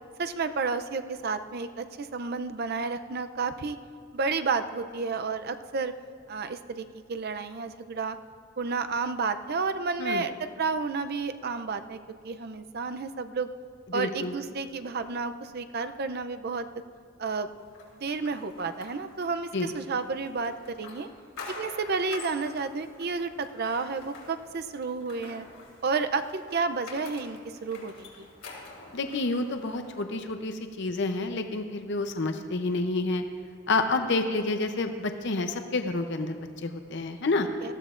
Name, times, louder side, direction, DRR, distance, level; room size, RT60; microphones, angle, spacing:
voice 1, 0.2-3.8 4.1-5.9 6.3-8.2 8.6-12.0 12.2-13.5 13.9-16.7 17.2-17.5 17.9-21.1 21.6-25.5 25.8-28.3 37.6-37.7, right 4 dB, 50° right, 10 dB, 0.5 m, -31 dB
voice 2, 13.9-14.3 19.5-19.7 28.9-33.2 33.7-37.5, left 3 dB, 60° left, 6 dB, 0.7 m, -29 dB
sound 1, 17.7-30.0, left 3 dB, 80° left, 3.1 m, -47 dB
19.0 x 14.5 x 2.5 m, 2.1 s
head